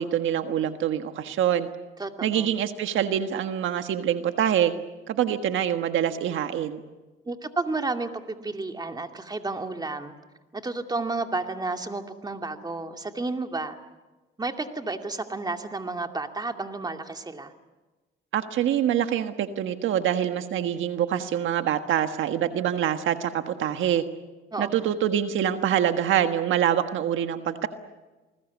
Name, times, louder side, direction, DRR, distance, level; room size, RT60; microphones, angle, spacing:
voice 1, 0.0-1.7 2.2-4.7 5.1-6.8 18.3-24.0 24.6-27.7, right 10 dB, 80° right, 8 dB, 1.5 m, -25 dB
voice 2, 2.0-2.5 7.3-10.1 10.5-13.8 14.4-17.5 24.5-24.8, right 3 dB, 20° right, 5 dB, 2.5 m, -31 dB
28.5 x 20.5 x 8.4 m, 1.2 s
cardioid pair, 90°, 20 cm